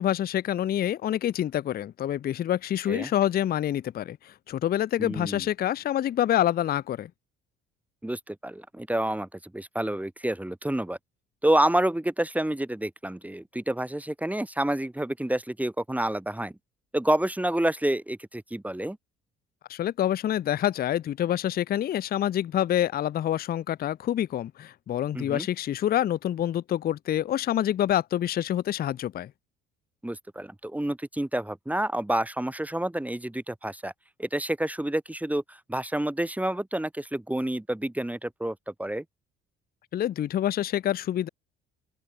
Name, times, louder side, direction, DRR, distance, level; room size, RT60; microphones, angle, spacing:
voice 1, 0.0-7.1 19.7-29.3 39.9-41.3, left 11 dB, 30° left, 0.5 m, -27 dB
voice 2, 5.0-5.5 8.0-11.0 11.4-16.5 16.9-19.0 25.1-25.5 30.0-33.9 34.2-39.0, right 1 dB, 5° right, 1.2 m, -28 dB
open air
figure-of-eight pair, 50°, 32 cm